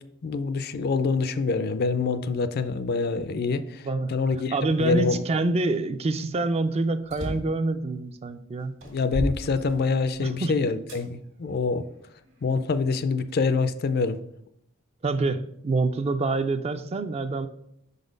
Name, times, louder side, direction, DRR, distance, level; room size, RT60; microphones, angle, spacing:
voice 1, 0.2-4.5 4.8-5.2 8.9-11.9 12.4-14.2, left 4 dB, 50° left, 0.4 m, -26 dB
voice 2, 4.5-8.8 10.2-10.6 15.0-17.5, right 3 dB, 30° right, 0.4 m, -26 dB
sound 1, 7.0-7.6 8.3-8.4 8.8-10.2 10.9-11.0 11.8-12.8, equal, 60° right, 1.6 m, -34 dB
5.4 x 4.0 x 5.1 m
head